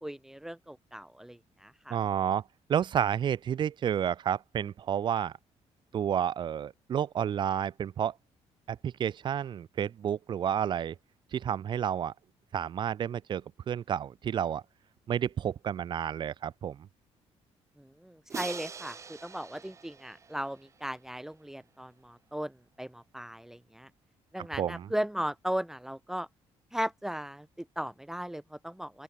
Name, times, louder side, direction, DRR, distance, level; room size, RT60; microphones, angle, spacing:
voice 1, 0.0-2.0 17.8-23.9 24.3-26.3 26.7-29.0, equal, 5° right, 1.1 m, -37 dB
voice 2, 1.9-2.4 2.7-5.3 5.9-8.1 8.7-10.9 11.3-12.1 12.5-14.6 15.1-16.8 24.6-24.9, right 9 dB, 45° right, 1.1 m, -30 dB
Crash cymbal, 18.3-21.3, right 5 dB, 25° right, 1.6 m, -43 dB
open air
cardioid pair, 165°, 11 cm